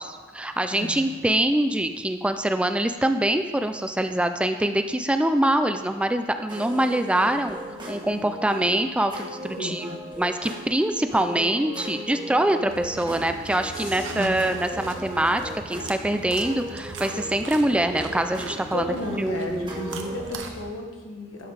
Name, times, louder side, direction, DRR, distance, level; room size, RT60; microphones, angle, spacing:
voice 1, 0.0-19.7, right 1 dB, 5° right, 8 dB, 0.3 m, -24 dB
voice 2, 0.7-1.1 9.6-10.0 13.7-14.4 18.7-21.5, left 1 dB, 90° left, 1 dB, 1.5 m, -34 dB
sound 1, 6.5-20.4, equal, 25° right, 1.5 m, -38 dB
sound 2, 12.7-20.7, right 4 dB, 70° right, 0.9 m, -40 dB
12.0 x 5.4 x 4.7 m, 1.3 s
head